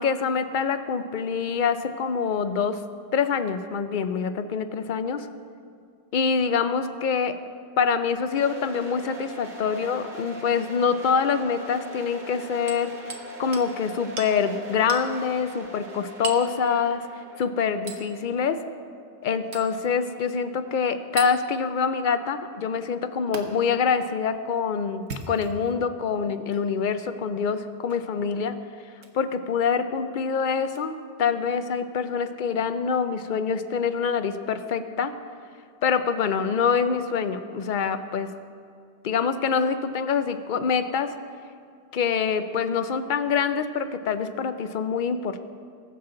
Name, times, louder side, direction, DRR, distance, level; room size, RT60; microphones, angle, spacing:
voice 1, 0.0-2.8 3.1-5.3 6.1-7.4 7.8-13.1 13.4-17.0 17.4-18.6 19.2-28.6 29.1-35.1 35.8-38.3 39.0-41.2 41.9-45.4, left 6 dB, 55° left, 10 dB, 0.7 m, -25 dB
sound 1, 8.3-21.2, right 1 dB, 45° right, 1.3 m, -42 dB
Hammer, 12.7-13.3 13.5-13.7 14.2-14.3 14.9-15.1 16.2-16.5 17.9-18.1 19.5-19.7 21.2-21.3 23.3-23.4 24.9-25.7 26.5-26.6 27.9-28.1 29.0-29.2 30.7-30.8, right 4 dB, 75° right, 1.3 m, -36 dB
20.0 x 7.2 x 3.8 m, 2.3 s
omnidirectional pair, 1.2 m